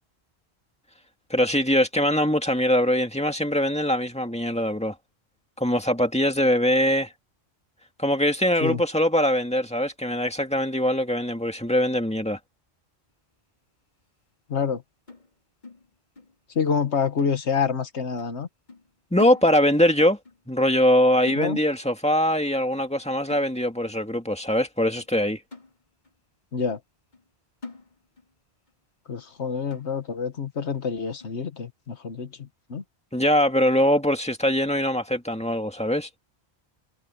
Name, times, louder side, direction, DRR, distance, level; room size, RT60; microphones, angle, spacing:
voice 1, 1.3-4.9 5.6-7.1 8.0-12.4 19.1-20.2 20.5-25.4 33.1-36.1, equal, 5° left, 2.1 m, -22 dB
voice 2, 14.5-14.8 16.5-18.5 21.4-21.6 26.5-26.8 29.1-32.8, left 6 dB, 85° left, 1.7 m, -27 dB
sound 1, 15.1-16.4 16.7-16.9 17.2-17.9 18.2-18.4 18.7-19.9 20.2-20.5 20.8-21.0 21.3-21.9 22.3-22.5 22.8-23.0 23.3-23.9 24.4-24.5 25.0-25.1 25.5-26.2 26.6-26.7 27.1-27.3 27.6-28.3 28.7-28.8 29.2-29.3 29.7-30.2 30.7-30.8 31.2-31.4, left 3 dB, 45° left, 3.0 m, -45 dB
omnidirectional pair, 1.1 m